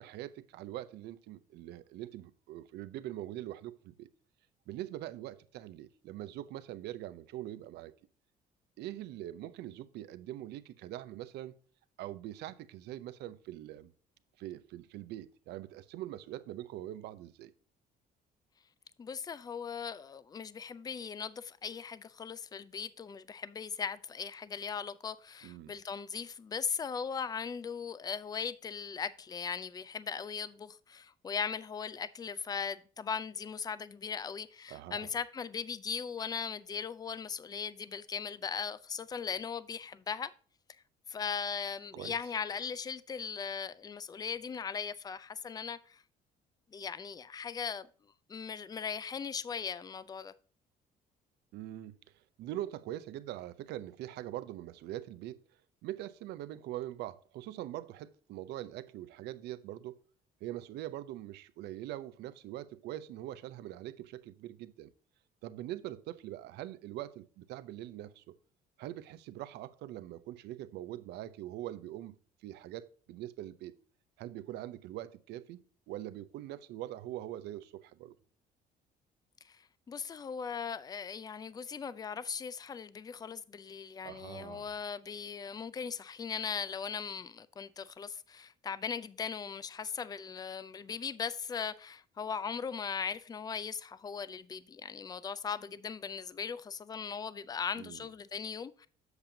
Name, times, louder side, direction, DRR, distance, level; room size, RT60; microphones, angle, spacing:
voice 1, 0.0-4.1 4.7-7.9 8.8-11.6 12.0-13.9 14.4-17.5 25.4-25.7 34.7-35.1 41.9-42.2 51.5-55.4 55.8-60.0 60.4-64.9 65.4-68.3 68.8-73.7 74.2-78.2 84.0-84.7 97.8-98.1, right 13 dB, 80° right, 0.6 m, -43 dB
voice 2, 19.0-40.3 41.1-46.0 46.7-47.9 48.3-50.3 79.4-79.6 79.9-98.9, left 6 dB, 25° left, 0.4 m, -39 dB
8.0 x 6.9 x 2.7 m
cardioid pair, 110°, 17 cm